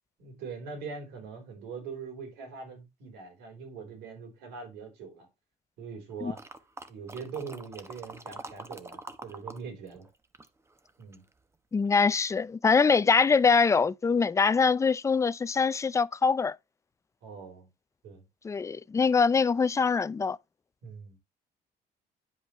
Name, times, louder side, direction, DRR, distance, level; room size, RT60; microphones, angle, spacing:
voice 1, 0.2-5.3 5.8-6.4 6.9-10.1 11.0-11.2 17.2-17.7 18.0-18.2 20.8-21.2, right 5 dB, 85° right, 4.1 m, -42 dB
sound 1, 6.3-9.6 9.9-11.3 11.8-11.9, right 2 dB, 15° right, 0.9 m, -45 dB
voice 2, 11.7-16.5 18.4-20.4, left 5 dB, 15° left, 0.4 m, -23 dB
10.0 x 5.2 x 3.1 m
cardioid pair, 110°, 17 cm